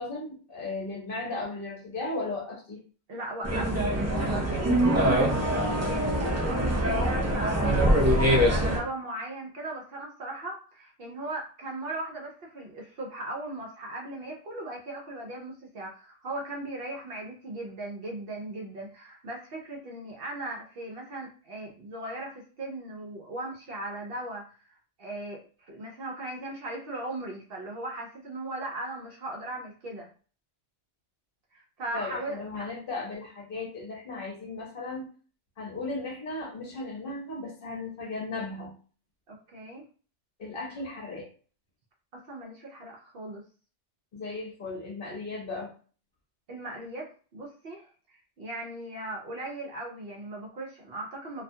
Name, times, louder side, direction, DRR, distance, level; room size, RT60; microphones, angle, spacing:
voice 1, 0.0-2.8 31.9-35.1 35.6-38.7 40.4-41.3 44.1-45.7, left 3 dB, 55° left, -1 dB, 0.9 m, -36 dB
voice 2, 3.1-24.6 25.0-30.1 31.5-32.7 39.3-39.8 42.1-43.4 46.5-51.4, right 2 dB, 60° right, -1 dB, 0.7 m, -38 dB
sound 1, 3.4-8.8, right 1 dB, 25° right, 0.3 m, -24 dB
2.3 x 2.2 x 2.7 m, 0.40 s
omnidirectional pair, 1.2 m